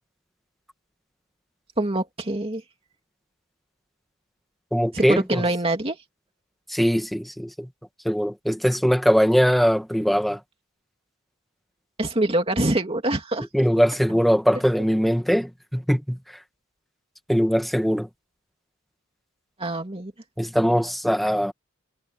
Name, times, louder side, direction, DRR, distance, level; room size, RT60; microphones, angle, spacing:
voice 1, 1.8-2.6 4.9-6.0 12.0-13.5 19.6-20.1, right 1 dB, 25° right, 2.7 m, -24 dB
voice 2, 4.7-5.4 6.7-7.7 8.0-10.4 13.5-16.2 17.3-18.1 20.4-21.5, equal, ahead, 2.0 m, -21 dB
head